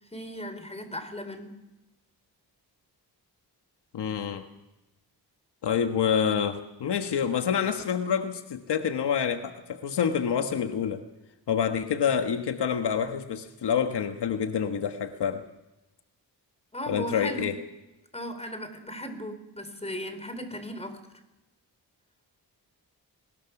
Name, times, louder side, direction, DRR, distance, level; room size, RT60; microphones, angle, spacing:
voice 1, 0.1-1.6 16.7-17.5 18.1-21.0, equal, 15° left, 9 dB, 4.1 m, -37 dB
voice 2, 3.9-4.4 5.6-11.0 11.5-15.4 16.9-17.6, left 7 dB, 80° left, 7 dB, 1.5 m, -27 dB
24.0 x 20.5 x 6.0 m, 0.98 s
cardioid pair, 90°, 40 cm